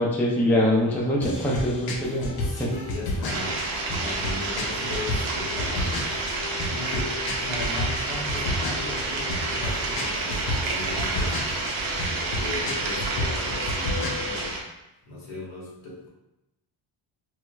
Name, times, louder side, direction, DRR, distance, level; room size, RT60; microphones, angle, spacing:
voice 1, 0.0-2.7, left 1 dB, 5° left, -3 dB, 0.3 m, -24 dB
sound 1, 1.2-14.5, left 2 dB, 50° left, 0.6 m, -32 dB
voice 2, 2.4-3.6 4.0-6.0 6.6-11.4 12.0-14.6 15.1-16.1, left 2 dB, 75° left, -3 dB, 1.2 m, -37 dB
sound 2, 3.3-14.6, right 3 dB, 75° right, 0.8 m, -29 dB
4.4 x 2.0 x 2.2 m, 0.94 s
cardioid pair, 105°, 48 cm